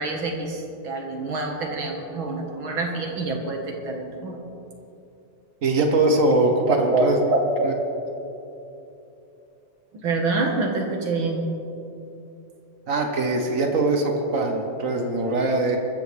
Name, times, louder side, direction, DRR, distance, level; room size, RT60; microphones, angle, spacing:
voice 1, 0.0-4.4 6.7-7.7 10.0-11.5, right 3 dB, 50° right, 1 dB, 2.0 m, -26 dB
voice 2, 5.6-7.2 7.6-7.7 12.9-15.8, right 2 dB, 80° right, 2 dB, 0.7 m, -22 dB
24.0 x 14.0 x 3.4 m, 2.8 s
omnidirectional pair, 3.4 m